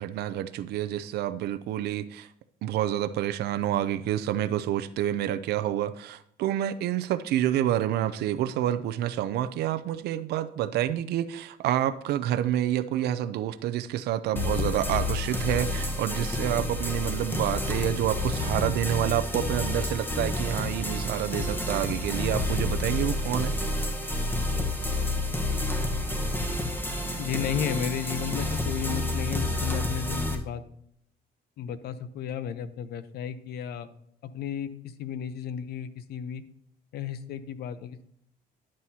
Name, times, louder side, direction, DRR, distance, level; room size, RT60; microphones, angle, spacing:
voice 1, 0.0-2.3 2.6-23.5, right 12 dB, 75° right, 12 dB, 0.5 m, -28 dB
sound 1, 14.4-30.4, left 2 dB, 10° left, 1.2 m, -29 dB
voice 2, 27.2-30.6 31.6-33.9 34.2-36.4 36.9-38.0, left 8 dB, 70° left, 13 dB, 0.8 m, -33 dB
11.0 x 7.5 x 2.8 m, 0.69 s
cardioid pair, 110°, 17 cm